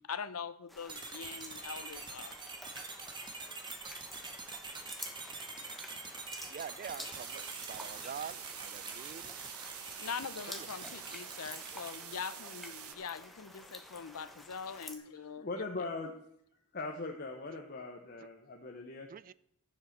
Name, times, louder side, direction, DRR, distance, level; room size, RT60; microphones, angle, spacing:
voice 1, 0.0-2.4 10.0-15.5, left 6 dB, 75° left, 14 dB, 0.7 m, -43 dB
sound 1, 0.7-15.0, equal, ahead, 1.2 m, -50 dB
sound 2, 0.9-12.5, right 3 dB, 20° right, 1.5 m, -46 dB
voice 2, 6.5-9.3 10.5-10.7 19.1-19.3, right 7 dB, 40° right, 19 dB, 0.3 m, -45 dB
sound 3, 7.1-12.9, right 10 dB, 70° right, 1.1 m, -47 dB
voice 3, 15.4-16.1 16.7-19.1, left 3 dB, 45° left, 2 dB, 1.0 m, -40 dB
12.0 x 7.5 x 6.7 m, 0.72 s
head